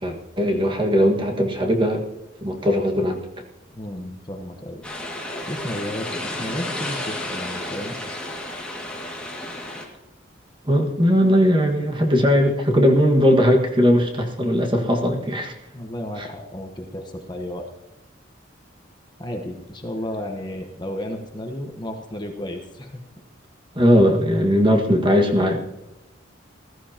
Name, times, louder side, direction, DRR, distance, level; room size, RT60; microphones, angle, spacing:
voice 1, 0.0-2.0 2.4-3.2 10.6-15.5 23.7-25.6, equal, 25° right, 1 dB, 1.7 m, -19 dB
voice 2, 3.7-4.8 5.5-8.0 15.7-17.7 19.2-22.9, left 1 dB, 20° left, 2 dB, 1.1 m, -33 dB
sound 1, 4.8-9.8, left 1 dB, 5° left, 2.0 m, -32 dB
20.0 x 13.5 x 2.9 m, 0.95 s
head